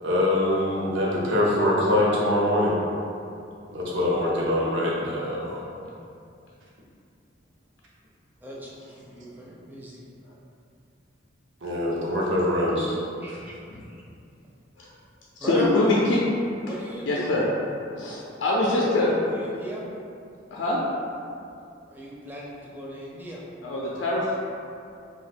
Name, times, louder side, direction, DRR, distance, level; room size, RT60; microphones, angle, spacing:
voice 1, 0.0-2.7 3.7-5.6 11.6-13.0, left 1 dB, 80° right, -5 dB, 0.8 m, -24 dB
voice 2, 8.4-10.0 13.2-13.5 13.8-14.0 15.4-16.0 16.6-17.4 18.7-19.8 21.9-23.4, equal, 10° right, -5 dB, 0.5 m, -37 dB
voice 3, 15.4-16.2 17.0-17.4 18.0-19.1 20.5-20.8 23.6-24.3, left 2 dB, 85° left, -5 dB, 0.4 m, -23 dB
2.9 x 2.3 x 4.1 m, 2.5 s
head